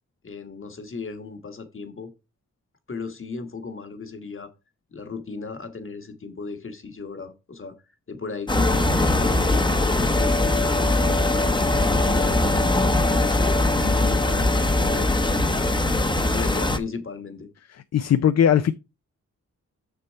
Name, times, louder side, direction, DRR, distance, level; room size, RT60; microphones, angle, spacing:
voice 1, 0.2-2.1 2.9-4.5 4.9-7.8 8.1-11.4 11.8-13.6 13.9-14.5 14.8-15.8 16.2-17.5, left 4 dB, 45° left, 1.4 m, -36 dB
sound 1, 8.5-16.8, left 2 dB, 15° left, 0.8 m, -21 dB
voice 2, 13.8-14.2 17.9-18.7, left 9 dB, 60° left, 0.5 m, -20 dB
6.9 x 6.7 x 4.5 m
wide cardioid pair, 155°, 30 cm